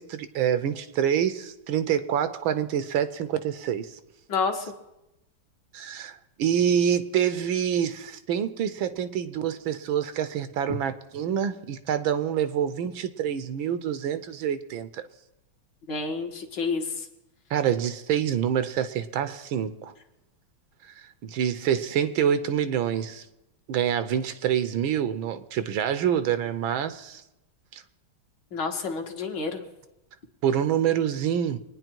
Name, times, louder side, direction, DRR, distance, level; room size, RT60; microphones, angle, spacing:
voice 1, 0.0-4.0 5.7-15.1 17.5-19.9 20.9-23.3 23.7-27.2 27.7-27.8 30.4-31.6, right 9 dB, 75° right, 1.5 m, -26 dB
voice 2, 4.3-4.6 15.9-17.0 28.5-29.6, left 4 dB, 60° left, 2.0 m, -29 dB
24.5 x 9.8 x 4.5 m
omnidirectional pair, 2.3 m